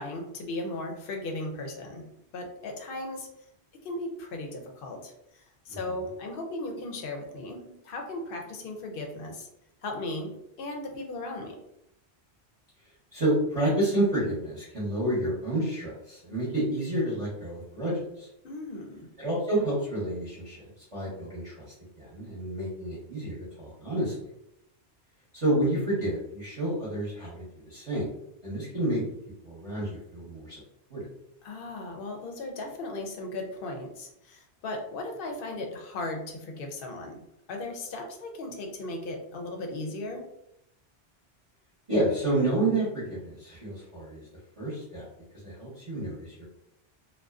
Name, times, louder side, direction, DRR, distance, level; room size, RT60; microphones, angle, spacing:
voice 1, 0.0-3.3 3.8-9.5 9.8-11.6 18.4-19.1 31.4-40.3, left 2 dB, 60° left, 2 dB, 0.6 m, -37 dB
voice 2, 13.1-18.3 19.2-21.7 22.0-24.3 25.3-28.1 28.4-29.0 29.4-30.6 30.9-31.1 41.9-44.2 44.6-45.1 45.4-46.4, right 1 dB, 30° right, -8 dB, 0.8 m, -29 dB
2.5 x 2.2 x 2.3 m, 0.80 s
omnidirectional pair, 1.2 m